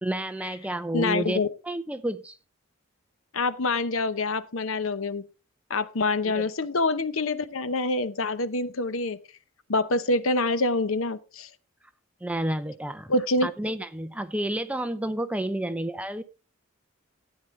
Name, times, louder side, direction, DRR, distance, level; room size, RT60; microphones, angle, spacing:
voice 1, 0.0-2.4 6.2-6.4 12.2-13.1 13.4-16.2, right 1 dB, 5° right, 0.5 m, -30 dB
voice 2, 0.9-1.5 3.3-5.2 5.7-9.2 9.7-11.5 13.1-13.5, left 2 dB, 70° left, 0.8 m, -26 dB
13.0 x 9.1 x 3.2 m
head